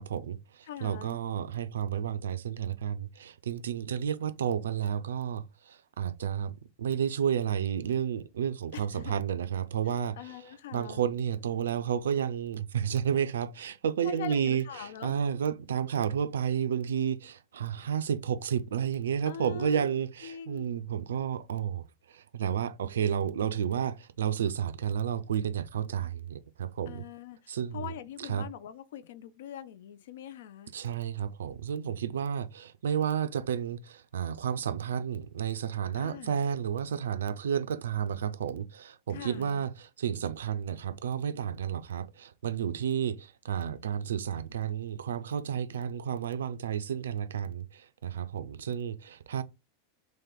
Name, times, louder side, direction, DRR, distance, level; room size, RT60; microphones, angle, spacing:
voice 1, 0.0-10.2 10.7-27.0 27.5-27.9 28.2-28.5 30.7-49.4, right 8 dB, 65° right, 0.3 m, -31 dB
voice 2, 0.6-1.2 8.7-9.2 9.9-11.1 14.0-15.2 19.3-20.7 26.9-30.7 36.0-36.4 39.1-39.7, left 10 dB, 55° left, 0.3 m, -43 dB
3.1 x 2.9 x 3.6 m
figure-of-eight pair, 90°, 0 cm